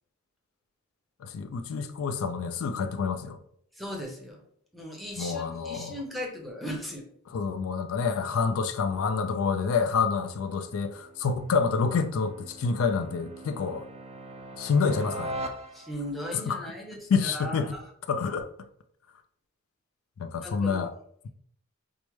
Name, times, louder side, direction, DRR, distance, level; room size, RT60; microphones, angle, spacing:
voice 1, 1.2-3.4 5.2-6.0 7.3-13.9 14.6-15.3 16.3-16.7 17.1-17.7 18.1-18.5 20.2-20.9, left 5 dB, 75° left, 0.3 m, -28 dB
voice 2, 3.8-4.4 4.7-7.0 15.7-17.9 20.4-20.9, equal, ahead, 0.7 m, -37 dB
sound 1, 10.0-16.2, right 1 dB, 30° right, 0.3 m, -42 dB
4.6 x 2.0 x 3.0 m
head